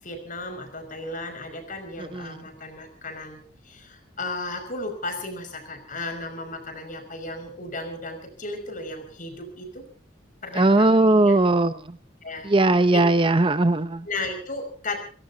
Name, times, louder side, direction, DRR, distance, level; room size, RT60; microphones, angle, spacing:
voice 1, 0.0-9.8 10.4-11.4 12.2-12.5 12.9-13.1 14.0-15.1, left 2 dB, 45° left, 6 dB, 5.7 m, -35 dB
voice 2, 10.5-12.0 12.4-14.1, right 2 dB, 25° right, 12 dB, 0.7 m, -19 dB
29.5 x 17.0 x 2.8 m, 0.40 s
head